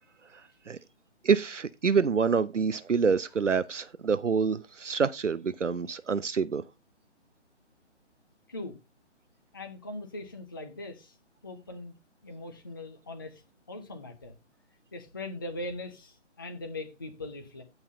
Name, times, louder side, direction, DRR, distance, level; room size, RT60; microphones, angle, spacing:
voice 1, 0.3-0.8 1.2-6.6, right 5 dB, 80° right, 0.7 m, -27 dB
voice 2, 9.5-11.2 11.4-11.9 12.2-13.4 13.7-14.4 14.9-17.6, left 2 dB, 20° left, 0.5 m, -40 dB
17.0 x 5.7 x 2.6 m
figure-of-eight pair, 145°, 36 cm